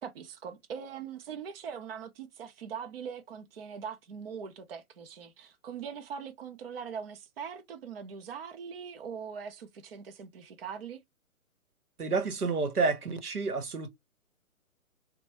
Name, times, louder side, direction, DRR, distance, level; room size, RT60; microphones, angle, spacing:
voice 1, 0.0-11.0, right 7 dB, 45° right, 0.6 m, -41 dB
voice 2, 12.0-13.9, right 4 dB, 85° right, 1.0 m, -29 dB
3.3 x 2.2 x 2.9 m
figure-of-eight pair, 140°, 43 cm